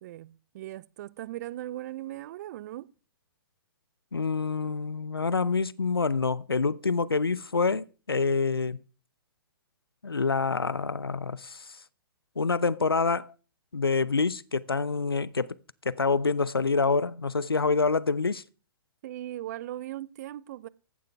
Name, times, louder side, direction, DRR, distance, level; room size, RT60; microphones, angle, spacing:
voice 1, 0.0-2.9 19.0-20.7, right 14 dB, 45° right, 0.6 m, -38 dB
voice 2, 4.1-8.8 10.0-11.7 12.4-13.3 13.7-15.5 15.8-18.4, left 4 dB, 90° left, 0.6 m, -26 dB
15.5 x 11.0 x 3.4 m
figure-of-eight pair, 115°, 12 cm